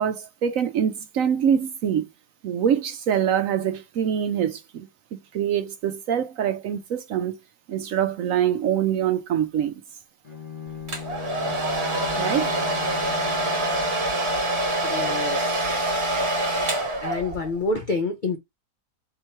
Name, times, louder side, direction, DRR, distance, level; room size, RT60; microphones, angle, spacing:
voice 1, 0.0-2.1 2.4-4.9 5.3-7.4 7.7-9.7 12.2-12.6, right 9 dB, 65° right, 0.9 m, -24 dB
Bowed string instrument, 10.2-14.3, left 7 dB, 35° left, 1.3 m, -38 dB
Domestic sounds home sounds, 10.9-17.6, right 1 dB, 45° right, 1.4 m, -25 dB
voice 2, 14.8-16.2 17.0-18.4, left 3 dB, 65° left, 0.4 m, -29 dB
3.7 x 3.0 x 4.4 m
omnidirectional pair, 1.7 m